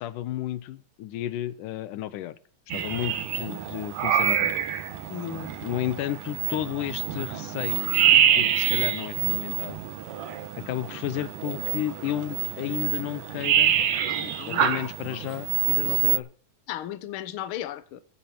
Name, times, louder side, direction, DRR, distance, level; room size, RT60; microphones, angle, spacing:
voice 1, 0.0-2.4 2.7-4.6 5.6-7.9 8.3-9.8 10.7-13.8 14.5-16.3, left 13 dB, 85° left, 2.4 m, -32 dB
sound 1, 2.7-16.2, right 10 dB, 85° right, 3.0 m, -26 dB
voice 2, 5.1-5.5 14.1-14.7 16.7-18.0, left 11 dB, 65° left, 1.4 m, -35 dB
16.5 x 13.0 x 4.4 m
omnidirectional pair, 3.6 m